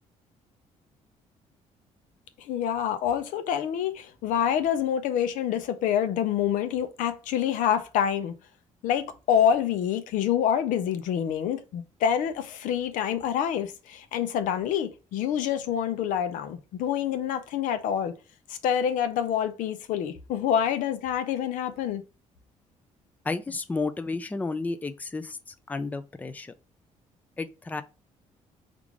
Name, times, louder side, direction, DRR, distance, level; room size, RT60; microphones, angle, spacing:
voice 1, 2.4-8.3 8.8-18.1 18.5-22.0, left 9 dB, 85° left, 0.6 m, -27 dB
voice 2, 23.2-26.5 27.4-27.8, left 3 dB, 10° left, 0.4 m, -32 dB
3.6 x 2.5 x 4.6 m
cardioid pair, 100°, 13 cm